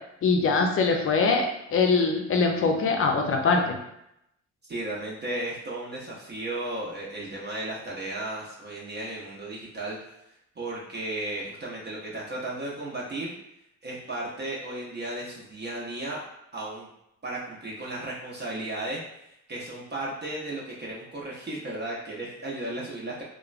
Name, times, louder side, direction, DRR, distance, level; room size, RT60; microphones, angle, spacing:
voice 1, 0.2-1.4 1.7-3.8, left 4 dB, 45° left, 3 dB, 0.5 m, -22 dB
voice 2, 4.7-10.0 10.6-13.3 13.8-16.2 16.5-16.9 17.2-19.2 19.5-23.2, right 1 dB, 35° right, -4 dB, 0.6 m, -34 dB
3.0 x 2.1 x 2.4 m, 0.81 s
cardioid pair, 90°, 30 cm